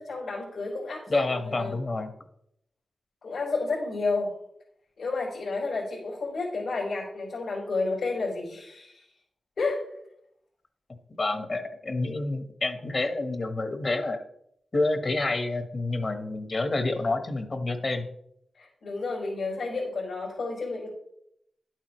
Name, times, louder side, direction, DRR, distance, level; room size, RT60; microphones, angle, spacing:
voice 1, 0.1-1.8 3.2-4.3 5.0-9.1 9.6-9.8 18.6-20.9, left 3 dB, 80° left, -7 dB, 4.2 m, -31 dB
voice 2, 1.1-2.1 11.2-14.2 14.7-18.1, left 2 dB, 45° left, 7 dB, 1.2 m, -28 dB
11.0 x 8.9 x 3.1 m, 0.74 s
wide cardioid pair, 90°, 0 cm